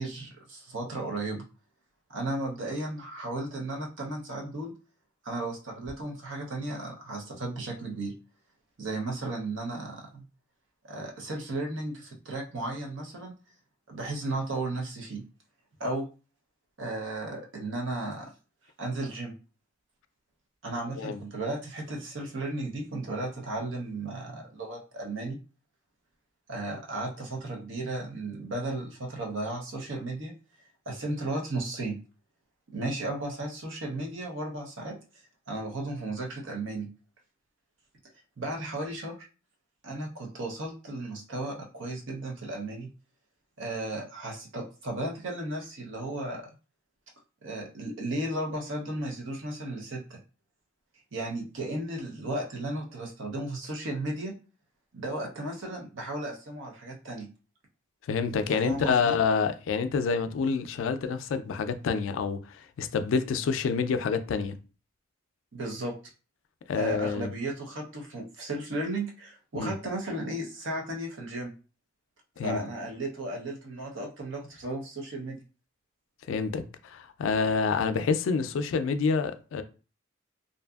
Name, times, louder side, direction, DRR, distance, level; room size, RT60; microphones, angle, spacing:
voice 1, 0.0-1.4 2.1-4.7 5.2-8.1 8.8-10.3 10.9-13.3 13.9-15.2 15.8-16.1 16.8-18.3 18.8-19.3 20.6-25.4 26.5-30.3 30.9-32.0 32.7-35.0 35.5-36.9 38.4-39.1 39.8-42.9 43.6-46.4 47.4-50.2 51.1-54.3 54.9-57.3 58.5-59.2 65.5-65.9 66.7-71.5 72.4-75.4, right 2 dB, 70° right, 0.7 m, -34 dB
voice 2, 58.1-64.6 66.7-67.3 69.5-69.8 72.4-72.6 76.3-79.6, left 5 dB, 75° left, 0.3 m, -28 dB
2.6 x 2.4 x 2.3 m
head